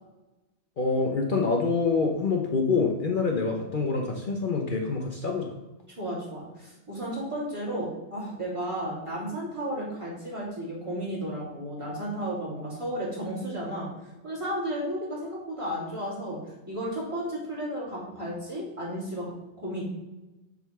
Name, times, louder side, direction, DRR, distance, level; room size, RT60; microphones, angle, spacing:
voice 1, 0.8-5.5, left 4 dB, 50° left, 1 dB, 1.0 m, -26 dB
voice 2, 6.0-19.3 19.6-19.8, right 1 dB, 25° right, -6 dB, 3.4 m, -33 dB
7.2 x 4.2 x 6.7 m, 1.1 s
omnidirectional pair, 1.1 m